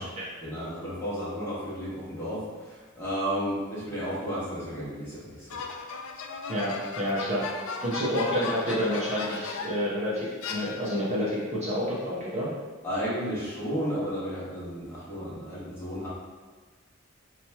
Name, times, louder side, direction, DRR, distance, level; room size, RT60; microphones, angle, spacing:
voice 1, 0.4-5.6 12.8-16.1, equal, 10° left, -10 dB, 1.1 m, -33 dB
sound 1, 5.5-9.9 10.4-11.2, left 4 dB, 90° left, 0.4 m, -36 dB
voice 2, 6.5-7.4 7.8-12.5, equal, 35° right, -7 dB, 0.7 m, -29 dB
2.9 x 2.3 x 4.1 m, 1.4 s
head